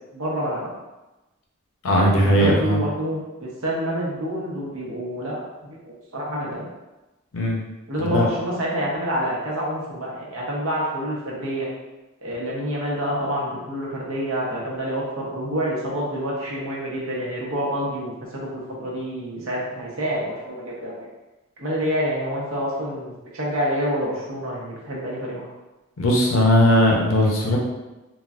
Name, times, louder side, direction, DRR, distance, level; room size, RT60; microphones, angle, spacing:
voice 1, 0.1-0.7 2.1-6.7 7.9-11.7 12.2-21.1 21.6-25.4, equal, 80° right, -4 dB, 0.9 m, -27 dB
voice 2, 1.8-2.8 7.3-7.6 8.0-8.3 26.0-27.6, left 1 dB, 75° left, -1 dB, 0.7 m, -18 dB
3.8 x 2.1 x 2.4 m, 1.1 s
head